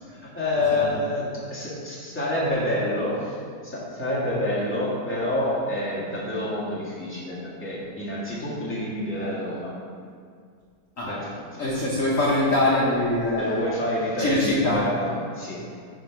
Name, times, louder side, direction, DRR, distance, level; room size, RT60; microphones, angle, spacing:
voice 1, 0.1-3.4 3.6-9.7 11.1-11.6 13.4-15.6, left 1 dB, 5° left, -7 dB, 1.5 m, -28 dB
voice 2, 11.6-13.6 14.2-14.8, left 1 dB, 55° left, -5 dB, 1.2 m, -23 dB
9.7 x 3.8 x 4.5 m, 2.1 s
omnidirectional pair, 1.8 m